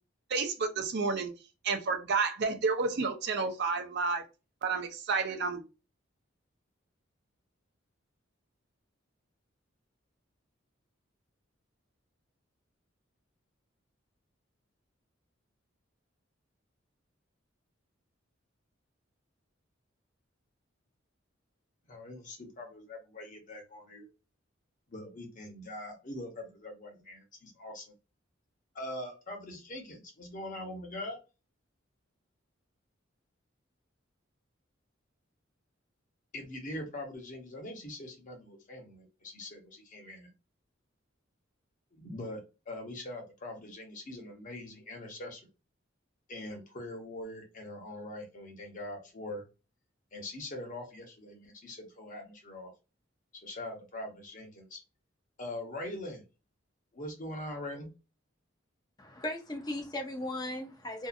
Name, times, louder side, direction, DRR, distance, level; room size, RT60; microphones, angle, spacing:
voice 1, 0.3-1.3 1.6-4.2 4.6-5.6, right 4 dB, 60° right, 5 dB, 0.5 m, -30 dB
voice 2, 21.9-24.1 24.9-27.9 28.7-31.2 36.3-40.3 41.9-42.4 42.7-45.4 46.3-49.4 50.1-52.7 53.4-54.8 55.4-56.2 56.9-57.9, left 1 dB, 45° left, 2 dB, 0.8 m, -42 dB
voice 3, 59.0-61.1, left 1 dB, 20° left, 4 dB, 0.5 m, -37 dB
2.7 x 2.4 x 2.4 m, 0.29 s
head